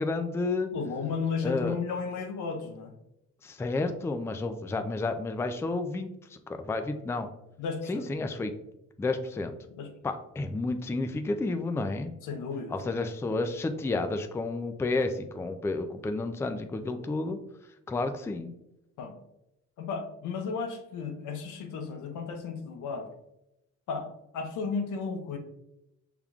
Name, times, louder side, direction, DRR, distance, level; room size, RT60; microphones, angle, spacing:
voice 1, 0.0-0.7 1.4-1.8 3.4-7.3 7.9-8.5 9.0-9.6 10.0-12.1 12.7-17.4 17.9-18.5, left 3 dB, 10° left, 7 dB, 0.3 m, -31 dB
voice 2, 0.7-2.9 7.6-8.1 9.8-9.9 12.2-12.7 19.0-19.2 19.8-23.1 23.9-25.4, left 5 dB, 80° left, 5 dB, 0.8 m, -34 dB
5.8 x 3.5 x 2.4 m, 0.87 s
cardioid pair, 90°, 30 cm